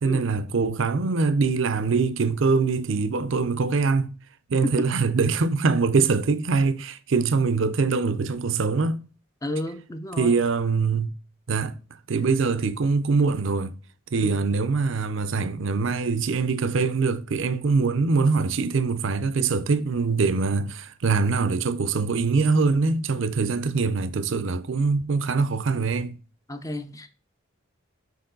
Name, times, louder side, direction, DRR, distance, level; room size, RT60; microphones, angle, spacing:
voice 1, 0.0-4.1 4.5-9.0 10.2-11.1 11.5-11.7 12.1-13.7 14.1-26.2, right 4 dB, 65° right, 0.5 m, -23 dB
voice 2, 9.4-10.4 14.2-14.4 26.5-27.1, left 1 dB, 15° left, 0.4 m, -32 dB
6.8 x 4.6 x 3.8 m
head